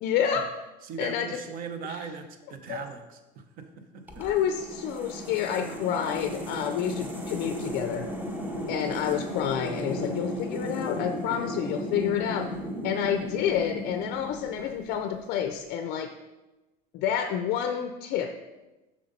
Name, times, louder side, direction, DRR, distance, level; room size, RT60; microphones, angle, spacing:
voice 1, 0.0-0.5 1.0-1.4 1.9-2.1 2.7-2.8 4.2-8.1 8.7-12.5 12.8-16.1 16.9-18.3, left 9 dB, 50° left, 7 dB, 0.5 m, -29 dB
voice 2, 0.8-4.3, right 6 dB, 45° right, 7 dB, 0.9 m, -39 dB
sound 1, 4.1-15.2, equal, 10° right, 0.7 m, -35 dB
7.5 x 6.4 x 4.1 m, 1.1 s
cardioid pair, 155°, 20 cm